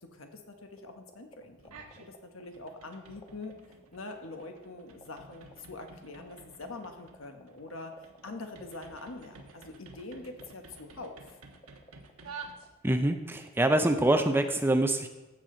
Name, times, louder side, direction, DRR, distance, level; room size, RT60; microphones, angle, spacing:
voice 1, 0.0-3.6 3.9-7.9 8.2-11.4, left 2 dB, 65° left, 5 dB, 1.3 m, -44 dB
sound 1, 0.8-14.1, left 1 dB, 25° left, 1.2 m, -53 dB
sound 2, 1.6-2.1 2.4-13.1, right 4 dB, 90° right, 1.2 m, -51 dB
voice 2, 12.8-15.1, right 1 dB, 10° right, 7 dB, 0.5 m, -25 dB
14.5 x 7.5 x 3.9 m, 1.1 s
head